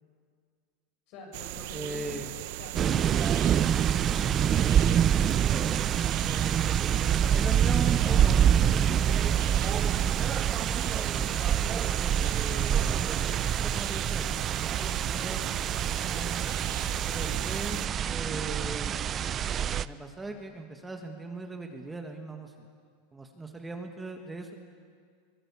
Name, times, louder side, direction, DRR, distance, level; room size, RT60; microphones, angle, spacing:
voice 1, 1.1-2.2 2.6-4.4 6.1-6.6 6.9-7.3 17.1-17.4, left 4 dB, 55° left, 1 dB, 7.1 m, -47 dB
sound 1, 1.3-17.9, right 15 dB, 65° right, 0.9 m, -38 dB
voice 2, 1.7-2.3 6.8-6.9 7.3-10.5 10.9-13.1 13.5-15.4 15.7-16.5 17.1-17.8 18.1-19.3 19.8-22.7 23.1-24.5, right 2 dB, 10° right, 4 dB, 1.7 m, -40 dB
sound 2, 2.7-19.8, right 9 dB, 30° right, 0.5 m, -26 dB
23.5 x 20.0 x 7.2 m, 2.1 s
supercardioid pair, 125°, 0 cm